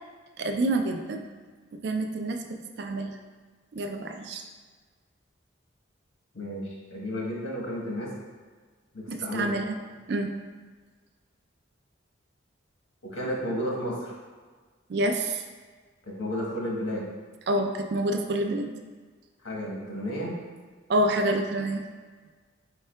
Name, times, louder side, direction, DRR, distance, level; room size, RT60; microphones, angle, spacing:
voice 1, 0.4-1.2 1.8-2.4 2.8-3.1 3.7-4.4 9.1-9.8 10.1-10.3 14.9-15.4 17.5-18.7 20.9-21.8, right 1 dB, 55° right, 5 dB, 0.3 m, -27 dB
voice 2, 6.3-8.1 8.9-9.5 13.1-14.1 16.1-17.0 19.4-20.3, equal, 90° left, -4 dB, 1.1 m, -32 dB
4.5 x 4.3 x 2.2 m, 1.5 s
head